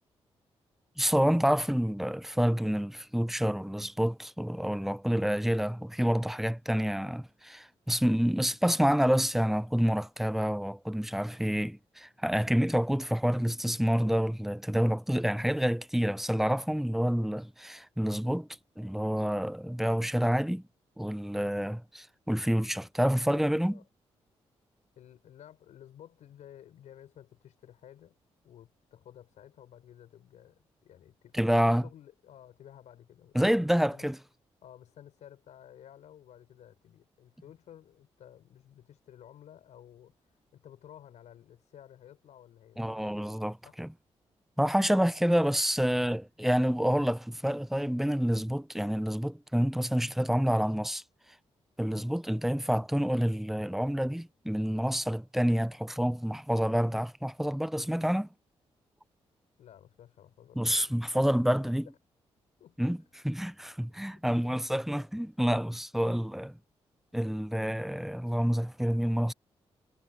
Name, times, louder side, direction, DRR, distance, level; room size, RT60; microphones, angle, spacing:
voice 1, 1.0-18.5 18.8-20.6 21.0-23.8 31.3-31.8 33.3-34.2 42.8-43.9 44.6-51.0 51.8-58.3 60.6-61.9 62.8-63.0 63.2-66.5 67.1-69.3, equal, ahead, 0.7 m, -28 dB
voice 2, 23.3-23.8 25.0-28.1 28.4-34.1 34.6-40.1 40.5-42.9 43.6-43.8 59.6-61.7 62.6-63.0 64.2-64.6, left 10 dB, 85° left, 5.7 m, -53 dB
cardioid pair, 60°, 12 cm